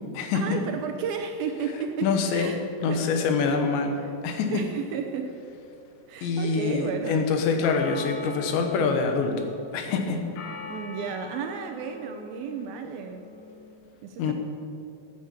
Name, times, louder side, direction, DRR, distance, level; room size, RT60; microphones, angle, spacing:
voice 1, 0.3-2.6 2.9-3.1 4.0-4.1 4.5-5.4 6.1-7.3 10.7-13.3 14.0-14.3, right 6 dB, 80° right, 4 dB, 2.2 m, -33 dB
voice 2, 2.0-2.5 2.8-3.9 4.2-4.5 6.2-9.3 9.7-10.2 14.2-14.3, left 5 dB, 85° left, 4 dB, 3.5 m, -25 dB
sound 1, 2.1-2.2 3.6-3.7 5.3-5.4 5.6-5.7 7.2-7.3 7.6-13.7, left 4 dB, 70° left, 3.2 m, -42 dB
14.5 x 9.2 x 7.3 m, 2.6 s
omnidirectional pair, 5.0 m